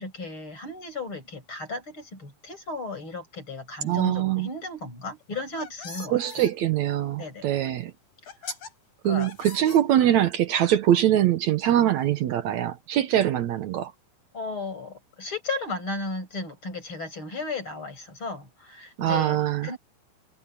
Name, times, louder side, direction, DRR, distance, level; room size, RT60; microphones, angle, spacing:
voice 1, 0.0-6.4 7.2-7.5 9.0-9.3 14.3-19.4 19.6-19.8, left 3 dB, 40° left, 7.1 m, -35 dB
voice 2, 3.8-4.5 6.1-7.9 9.0-13.9 19.0-19.7, right 11 dB, 70° right, 2.2 m, -23 dB
sound 1, 5.2-6.5 7.7-7.8 8.3-8.7 9.2-10.3, left 4 dB, 85° left, 9.0 m, -40 dB
omnidirectional pair, 3.5 m